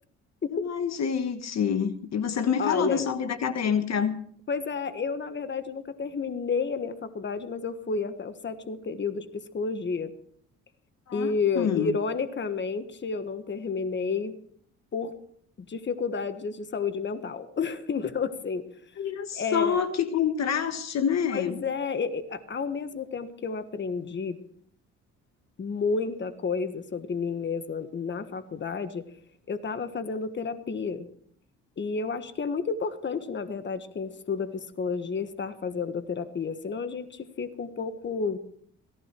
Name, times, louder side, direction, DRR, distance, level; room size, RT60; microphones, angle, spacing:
voice 1, 0.5-4.2 11.1-11.3 11.5-11.9 19.0-21.6, left 7 dB, 60° left, 9 dB, 1.4 m, -27 dB
voice 2, 2.6-3.1 4.5-10.1 11.1-14.3 14.9-15.1 15.7-18.6 19.3-19.8 21.3-24.4 25.6-29.1 29.5-31.1 31.8-38.4, left 5 dB, 40° left, 10 dB, 1.4 m, -31 dB
17.0 x 15.0 x 4.5 m, 0.63 s
cardioid pair, 90°, 30 cm